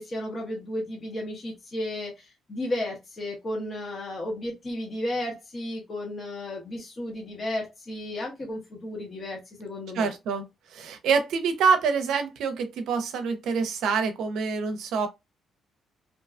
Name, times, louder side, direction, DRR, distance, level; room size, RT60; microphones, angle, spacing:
voice 1, 0.0-10.1, left 1 dB, 35° left, 0.9 m, -33 dB
voice 2, 9.9-10.4 10.7-15.1, right 5 dB, 80° right, 0.5 m, -26 dB
2.6 x 2.3 x 2.3 m
cardioid pair, 90°, 0 cm